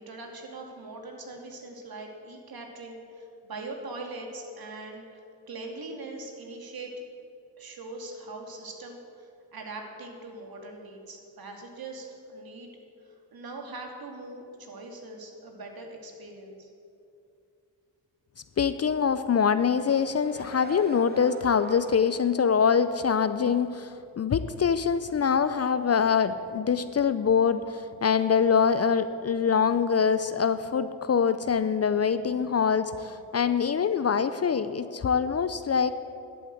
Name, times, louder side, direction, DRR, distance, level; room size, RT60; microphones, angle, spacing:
voice 1, 0.0-7.0 7.6-12.7 13.0-16.7, right 2 dB, 55° right, 2 dB, 2.6 m, -41 dB
voice 2, 18.6-35.9, left 6 dB, 35° left, 12 dB, 0.6 m, -24 dB
sound 1, 19.6-22.4 22.8-22.9, right 3 dB, 20° right, 1.1 m, -45 dB
11.5 x 8.6 x 7.9 m, 2.6 s
supercardioid pair, 50°, 44 cm